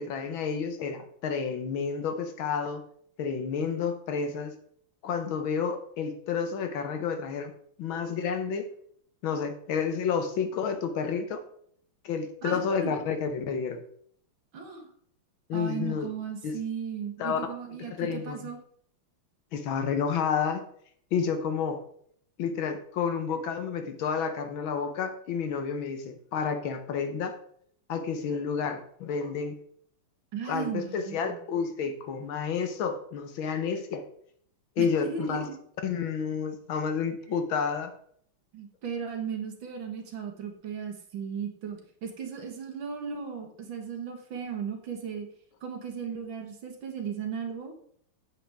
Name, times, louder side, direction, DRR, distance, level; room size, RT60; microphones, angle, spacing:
voice 1, 0.0-2.8 3.2-4.5 5.0-7.5 7.8-8.7 9.2-11.4 12.1-13.8 15.5-16.1 16.4-16.5 17.2-17.4 18.0-18.5 19.5-20.6 21.1-21.8 22.4-27.4 27.9-29.6 30.5-34.0 34.8-35.5 35.8-37.9, left 6 dB, 70° left, 8 dB, 1.7 m, -30 dB
voice 2, 12.4-12.9 14.5-14.9 15.5-18.6 30.3-31.4 34.8-35.6 37.3-37.4 38.5-45.3 45.6-47.7, right 6 dB, 65° right, 4 dB, 2.0 m, -36 dB
9.0 x 7.8 x 3.5 m, 0.63 s
omnidirectional pair, 2.4 m